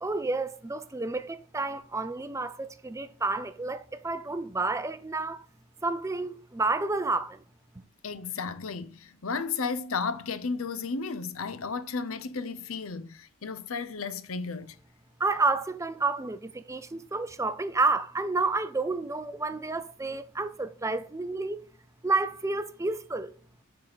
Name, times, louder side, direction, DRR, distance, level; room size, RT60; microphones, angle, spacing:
voice 1, 0.0-5.4 5.8-7.4 15.2-21.7 22.0-23.3, right 3 dB, 15° right, 0.5 m, -30 dB
voice 2, 8.0-14.7, left 4 dB, 75° left, 0.7 m, -33 dB
6.4 x 4.7 x 5.9 m
head